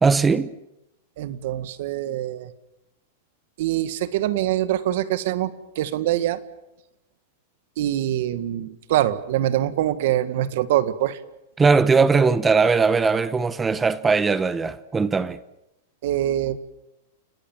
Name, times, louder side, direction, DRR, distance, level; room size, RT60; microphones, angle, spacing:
voice 1, 0.0-0.5 11.6-15.4, right 4 dB, 15° right, 1.1 m, -19 dB
voice 2, 1.2-2.5 3.6-6.4 7.8-11.2 16.0-16.6, right 13 dB, 65° right, 1.9 m, -24 dB
29.5 x 19.0 x 7.5 m
supercardioid pair, 140°, 0 cm